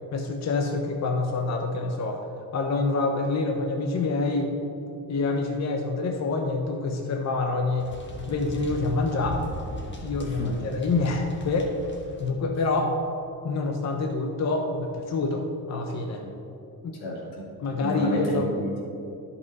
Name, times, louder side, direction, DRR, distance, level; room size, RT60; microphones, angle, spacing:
voice 1, 0.1-2.2 2.5-4.5 5.1-7.9 8.3-9.4 10.0-11.7 12.2-13.0 13.4-16.2 16.8-17.0 17.6-18.5, left 3 dB, 45° left, 3 dB, 0.9 m, -26 dB
sound 1, 7.8-12.3, equal, 30° left, 1.5 m, -38 dB
voice 2, 17.0-17.4 17.8-18.8, left 1 dB, 90° left, -3 dB, 2.3 m, -31 dB
12.0 x 5.6 x 4.1 m, 2.7 s
cardioid pair, 95°, 38 cm